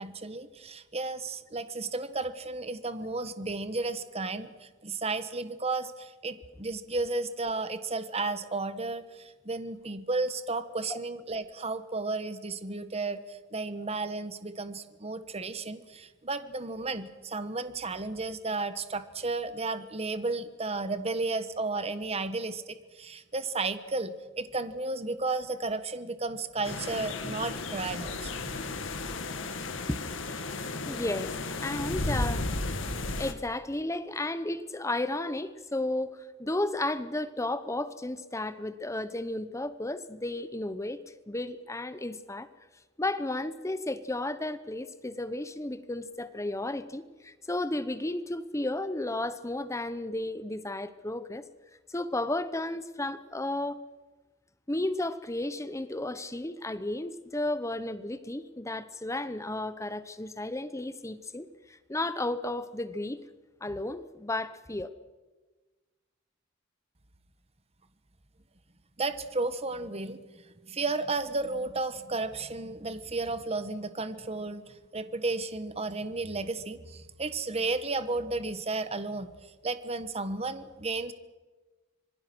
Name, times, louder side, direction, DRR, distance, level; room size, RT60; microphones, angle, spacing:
voice 1, 0.0-28.7 69.0-70.2 70.6-79.3 79.6-81.1, right 3 dB, 30° right, 1.3 m, -33 dB
sound 1, 26.6-33.3, left 2 dB, 75° left, 1.8 m, -34 dB
voice 2, 30.8-31.3 31.6-32.5 33.2-41.0 41.3-42.5 43.0-51.5 51.9-53.8 54.7-63.2 63.6-64.9, left 2 dB, 15° left, 0.9 m, -33 dB
26.0 x 21.5 x 6.2 m
head